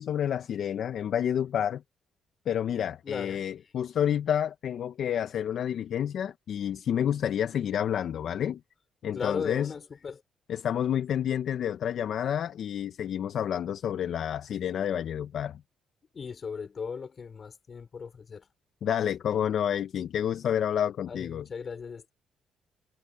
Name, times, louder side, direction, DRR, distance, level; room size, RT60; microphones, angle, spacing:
voice 1, 0.0-1.8 2.5-8.6 9.0-9.7 10.5-15.6 18.8-21.5, left 9 dB, 65° left, 0.9 m, -29 dB
voice 2, 3.0-3.4 9.1-10.2 16.1-18.5 21.1-22.1, left 6 dB, 45° left, 5.0 m, -37 dB
cardioid pair, 90°, 0 cm